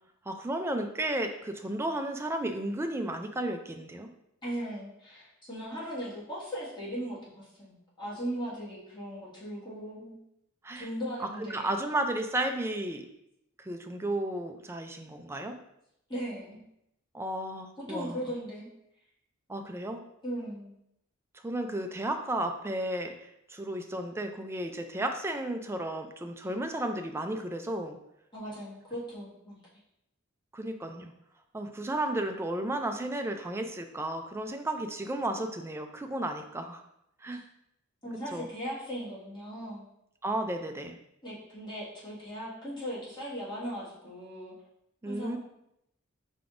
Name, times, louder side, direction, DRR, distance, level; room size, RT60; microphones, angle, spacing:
voice 1, 0.3-4.1 10.6-10.9 11.4-13.1 13.6-15.6 17.1-18.2 19.5-20.0 21.4-28.0 30.5-31.1 31.5-36.8 37.2-37.4 38.3-38.5 40.2-41.0 45.0-45.4, right 1 dB, 10° right, 5 dB, 0.4 m, -33 dB
voice 2, 4.4-10.1 10.7-11.7 16.1-16.6 17.9-18.7 20.2-20.7 28.3-29.6 37.3-37.4 38.0-39.8 41.2-44.5 45.0-45.4, equal, 20° left, -8 dB, 1.8 m, -38 dB
5.7 x 3.5 x 2.6 m, 0.78 s
head